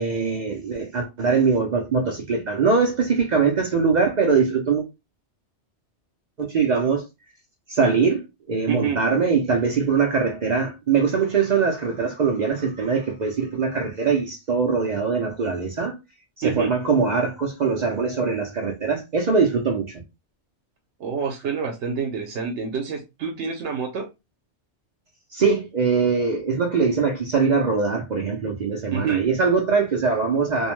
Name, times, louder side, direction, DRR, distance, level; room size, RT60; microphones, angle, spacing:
voice 1, 0.0-4.8 6.4-7.0 7.7-15.9 16.4-20.0 25.3-30.7, right 5 dB, 55° right, 0.5 m, -22 dB
voice 2, 8.7-9.0 16.4-16.7 21.0-24.1 28.9-29.2, right 6 dB, 80° right, 0.9 m, -27 dB
2.6 x 2.1 x 2.9 m
omnidirectional pair, 1.2 m